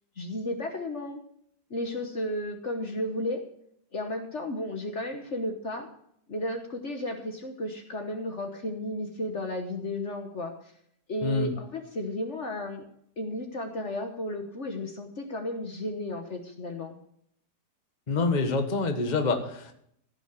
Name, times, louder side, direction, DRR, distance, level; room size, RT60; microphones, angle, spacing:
voice 1, 0.2-1.2 1.7-3.4 3.9-5.9 6.3-10.7 11.1-12.8 13.2-17.0, left 1 dB, 45° left, 4 dB, 1.5 m, -33 dB
voice 2, 11.2-11.5 18.1-19.8, left 3 dB, 30° left, 5 dB, 1.4 m, -26 dB
15.5 x 6.2 x 6.7 m, 0.69 s
omnidirectional pair, 1.7 m